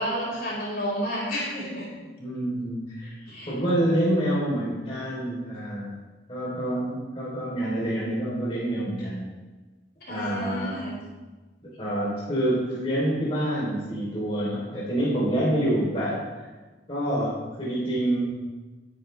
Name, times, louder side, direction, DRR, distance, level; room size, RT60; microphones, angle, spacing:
voice 1, 0.0-1.9 3.2-3.5 10.1-11.0, equal, 55° left, -4 dB, 5.1 m, -31 dB
voice 2, 2.2-3.1 3.5-5.9 6.3-9.3 10.1-10.9 11.6-16.5 16.9-18.3, right 1 dB, 30° left, -8 dB, 3.7 m, -27 dB
20.0 x 10.0 x 3.4 m, 1.3 s
head